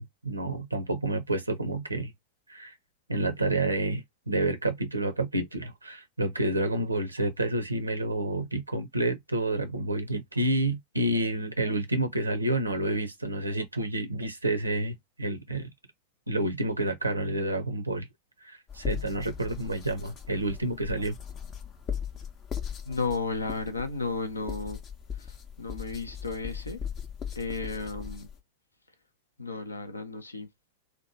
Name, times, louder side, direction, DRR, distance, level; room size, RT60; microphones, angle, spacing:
voice 1, 0.0-2.1 2.5-2.7 3.1-15.7 16.3-18.1 18.4-21.1, right 2 dB, 85° right, 0.5 m, -29 dB
sound 1, 18.7-28.4, left 8 dB, 30° left, 0.5 m, -39 dB
voice 2, 22.9-24.8 25.6-26.8 27.4-28.3 29.4-30.5, left 3 dB, 80° left, 0.5 m, -33 dB
2.8 x 2.2 x 2.5 m
figure-of-eight pair, 90°, 0 cm